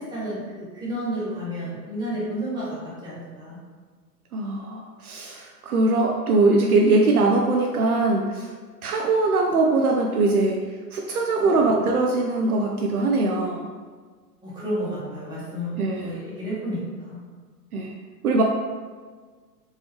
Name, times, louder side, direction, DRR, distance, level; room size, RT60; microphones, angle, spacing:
voice 1, 0.0-3.6 14.4-17.2, equal, 10° right, -9 dB, 1.4 m, -31 dB
voice 2, 4.3-8.5 8.8-10.6 10.9-13.7 15.8-16.2 17.7-17.9 18.2-18.4, right 3 dB, 60° right, 1 dB, 0.6 m, -21 dB
4.5 x 3.1 x 3.1 m, 1.5 s
figure-of-eight pair, 115°, 50 cm